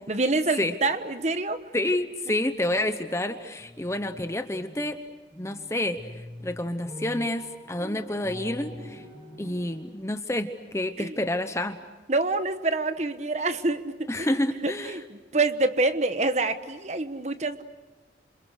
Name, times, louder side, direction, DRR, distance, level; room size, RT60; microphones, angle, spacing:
voice 1, 0.1-1.6 11.0-11.2 12.1-14.4 14.6-17.6, right 2 dB, 40° right, 10 dB, 1.2 m, -26 dB
voice 2, 1.7-5.0 5.4-6.0 6.4-9.0 9.4-11.8 14.1-15.0, left 1 dB, 15° left, 9 dB, 0.9 m, -29 dB
sound 1, 3.6-5.0 5.3-9.8, equal, 15° right, 6.5 m, -43 dB
29.0 x 27.0 x 6.5 m, 1.2 s
head